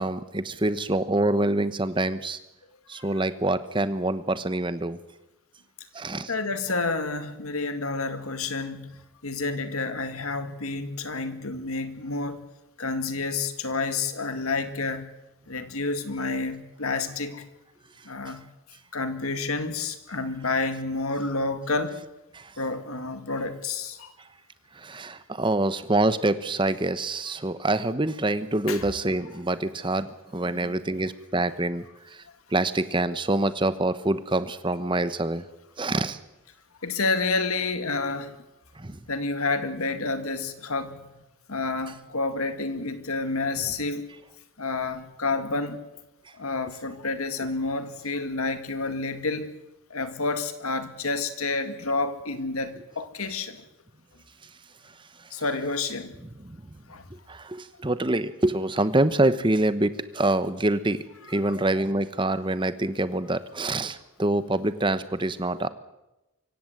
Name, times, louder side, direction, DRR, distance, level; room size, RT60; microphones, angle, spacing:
voice 1, 0.0-2.4 2.9-5.0 5.9-6.3 22.3-22.5 24.8-30.1 30.3-31.8 32.5-35.4 35.8-36.2 38.8-39.0 56.4-56.6 57.3-61.0 61.3-65.7, right 2 dB, 20° right, 13 dB, 1.0 m, -26 dB
voice 2, 6.3-12.4 12.8-15.1 15.5-17.4 18.0-18.4 18.9-22.0 22.6-24.1 28.7-28.9 30.4-31.0 36.8-38.4 39.1-41.0 41.5-44.1 44.6-45.8 46.4-49.5 49.9-53.6 55.3-56.1 56.9-57.0 61.4-61.5, left 3 dB, 85° left, 9 dB, 2.1 m, -29 dB
24.5 x 16.0 x 7.9 m, 0.97 s
head